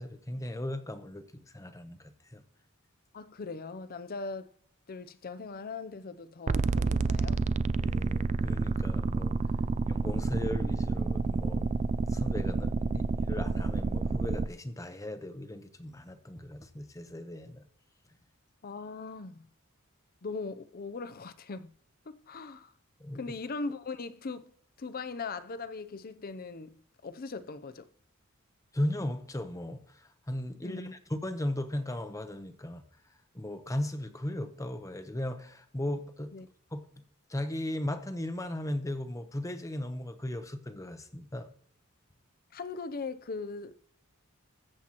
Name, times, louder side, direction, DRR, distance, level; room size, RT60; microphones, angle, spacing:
voice 1, 0.0-2.4 7.8-9.4 9.9-17.6 23.0-23.2 28.7-29.8 30.3-32.8 33.3-36.3 36.7-36.8 37.3-41.5, left 1 dB, 15° left, 0.9 m, -37 dB
voice 2, 3.1-4.5 4.9-7.4 9.6-9.7 12.9-13.0 18.6-19.5 20.2-21.7 22.1-22.7 23.1-24.5 24.8-27.9 30.6-30.9 36.3-36.5 42.5-43.8, left 4 dB, 45° left, 0.6 m, -40 dB
sound 1, 6.5-14.5, right 3 dB, 35° right, 0.3 m, -29 dB
21.5 x 7.7 x 3.0 m
head